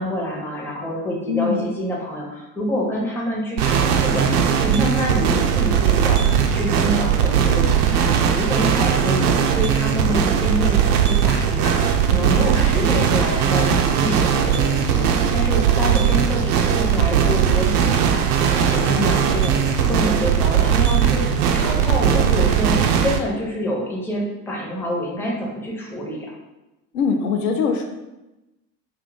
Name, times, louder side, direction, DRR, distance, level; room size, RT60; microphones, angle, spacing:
voice 1, 0.0-21.2 21.5-26.3, equal, 5° left, -3 dB, 0.5 m, -27 dB
voice 2, 1.3-1.7 26.9-27.9, left 6 dB, 65° left, 4 dB, 0.6 m, -22 dB
sound 1, 3.6-23.2, right 8 dB, 65° right, 0.5 m, -19 dB
2.6 x 2.4 x 3.8 m, 0.99 s
figure-of-eight pair, 75°, 49 cm